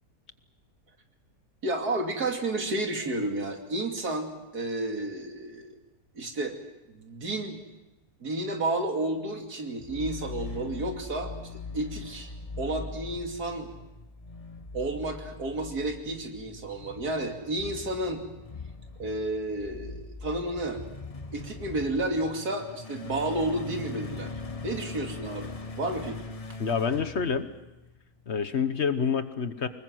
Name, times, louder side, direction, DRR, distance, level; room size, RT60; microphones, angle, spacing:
voice 1, 1.6-5.7 6.1-6.6 6.9-7.6 8.2-12.3 12.6-13.7 14.7-18.2 19.0-20.8 21.3-24.3 24.6-26.2, right 2 dB, 85° right, 3 dB, 3.1 m, -31 dB
sound 1, 9.8-27.9, left 3 dB, 30° left, 0.8 m, -41 dB
voice 2, 26.6-27.5 28.3-29.7, left 6 dB, 50° left, 11 dB, 1.2 m, -27 dB
25.0 x 21.0 x 7.7 m, 1.0 s
omnidirectional pair, 1.6 m